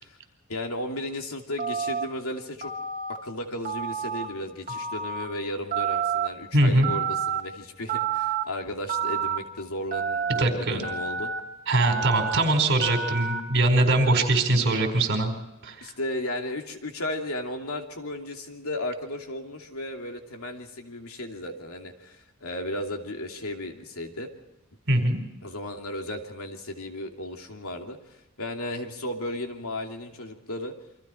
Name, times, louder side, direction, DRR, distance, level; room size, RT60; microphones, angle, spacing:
voice 1, 0.5-2.7 3.2-11.3 15.8-24.3 25.4-28.0 28.4-30.7, left 1 dB, 80° left, 3 dB, 2.8 m, -34 dB
Telephone, 1.6-2.0 2.6-3.2 3.6-4.3 4.7-5.2 5.7-6.3 6.8-7.4 7.9-8.4 8.9-9.4 9.9-10.4 10.8-11.4 11.8-12.4 12.8-13.4, right 7 dB, 40° right, 2.9 m, -29 dB
voice 2, 6.5-6.9 10.3-10.8 11.7-15.3 15.6-15.9 24.9-25.2, right 2 dB, 55° right, 5 dB, 4.6 m, -22 dB
28.5 x 25.0 x 4.5 m, 0.92 s
head